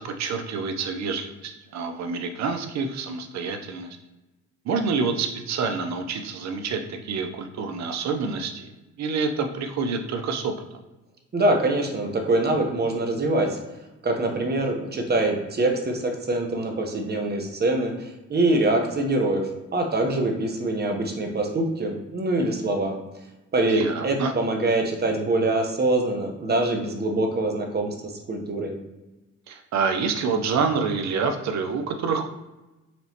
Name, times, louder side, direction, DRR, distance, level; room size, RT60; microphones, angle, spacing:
voice 1, 0.0-4.0 4.6-8.7 9.0-10.5 23.7-24.3 29.5-32.3, right 5 dB, 65° right, 6 dB, 0.7 m, -27 dB
voice 2, 11.3-13.6 14.0-23.0 23.5-28.7, right 2 dB, 35° right, 3 dB, 0.9 m, -24 dB
4.3 x 3.1 x 2.8 m, 1.0 s
cardioid pair, 90°, 30 cm